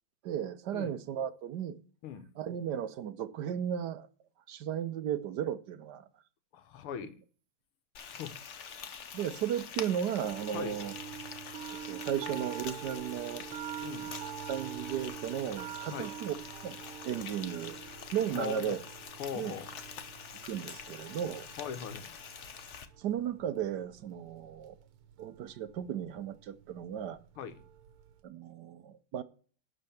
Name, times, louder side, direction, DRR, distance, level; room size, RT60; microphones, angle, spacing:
voice 1, 0.2-1.8 2.4-4.1 4.5-6.1 9.1-10.9 11.8-13.4 14.5-16.3 16.6-16.8 17.0-18.8 19.3-19.5 20.4-21.5 23.0-24.7 25.2-27.2 28.2-29.2, right 10 dB, 65° right, 1.1 m, -35 dB
voice 2, 6.5-7.1 8.1-8.8 10.5-10.8 13.8-14.1 15.9-16.1 18.3-18.8 19.2-19.7 21.6-22.1 27.4-27.6, left 8 dB, 90° left, 2.0 m, -40 dB
Frying (food), 7.9-22.8, left 7 dB, 55° left, 0.8 m, -45 dB
sound 1, 10.2-28.2, right 10 dB, 90° right, 1.8 m, -46 dB
11.5 x 4.5 x 7.0 m
omnidirectional pair, 2.3 m